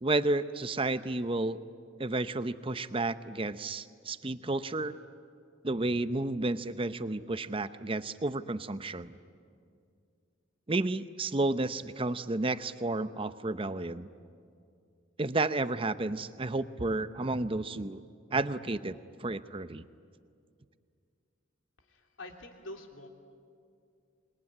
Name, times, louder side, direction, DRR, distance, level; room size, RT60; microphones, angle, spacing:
voice 1, 0.0-1.6 2.0-4.9 5.6-9.1 10.7-14.1 15.2-18.0 18.3-19.8, right 2 dB, 30° right, 12 dB, 0.7 m, -31 dB
voice 2, 21.8-23.1, left 1 dB, 85° left, 3 dB, 2.9 m, -46 dB
27.0 x 22.0 x 9.7 m, 2.3 s
head